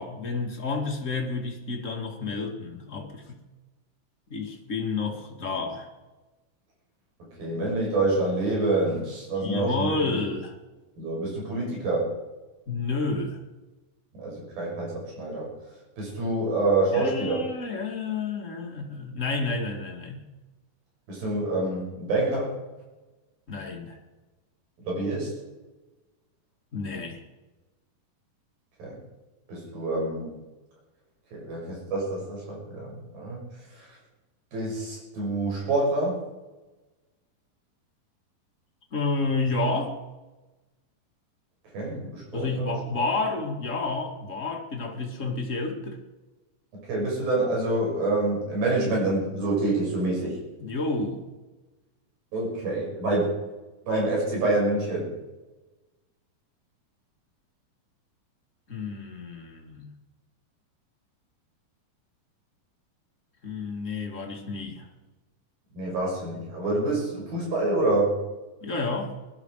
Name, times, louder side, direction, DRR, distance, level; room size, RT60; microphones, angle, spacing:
voice 1, 0.0-3.4 4.3-5.9 9.4-10.5 12.7-13.4 16.9-20.2 23.5-24.0 26.7-27.2 38.9-40.0 42.3-46.0 50.6-51.3 58.7-59.9 63.4-64.9 68.6-69.1, left 3 dB, 25° left, 1 dB, 2.0 m, -30 dB
voice 2, 7.4-10.2 11.0-12.1 14.1-15.5 16.0-17.4 21.1-22.6 24.9-25.3 28.8-29.0 29.5-30.3 31.3-33.4 33.8-33.9 34.5-36.2 41.7-42.7 46.9-50.4 52.3-53.3 53.9-55.1 65.7-68.1, right 2 dB, 90° right, -3 dB, 8.4 m, -27 dB
21.0 x 13.0 x 4.9 m, 1.1 s
omnidirectional pair, 4.1 m